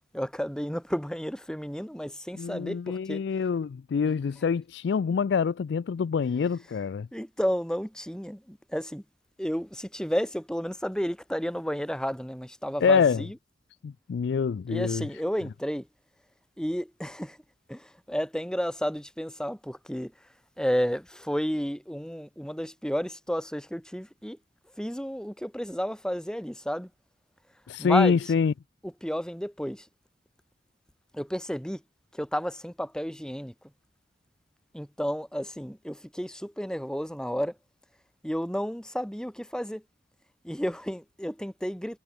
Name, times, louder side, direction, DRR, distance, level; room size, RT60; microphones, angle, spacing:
voice 1, 0.1-3.2 7.1-9.0 9.4-13.4 14.7-15.9 16.6-17.4 17.7-20.1 20.6-24.4 24.8-26.9 27.8-28.3 28.8-29.9 31.1-31.8 32.1-33.5 34.7-37.6 38.2-39.8 40.4-42.0, equal, 5° left, 2.2 m, -32 dB
voice 2, 2.4-7.1 12.8-13.2 13.8-15.1 27.7-28.5, left 6 dB, 65° left, 0.3 m, -25 dB
head